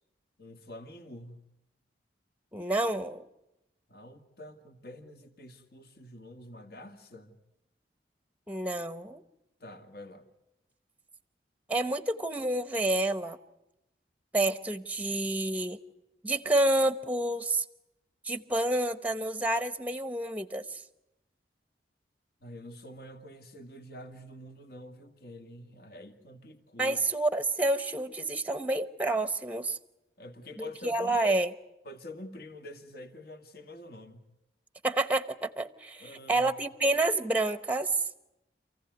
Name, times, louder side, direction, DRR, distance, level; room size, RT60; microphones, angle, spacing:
voice 1, 0.4-1.5 3.9-7.4 9.6-10.2 22.4-27.0 30.2-31.1 31.8-34.2 36.0-36.5, left 1 dB, 60° left, 2.1 m, -46 dB
voice 2, 2.5-3.2 8.5-9.2 11.7-13.4 14.3-15.8 16.2-17.6 18.2-20.8 26.8-29.8 30.6-31.5 34.8-38.0, right 2 dB, 10° right, 0.9 m, -29 dB
27.5 x 15.5 x 9.4 m
head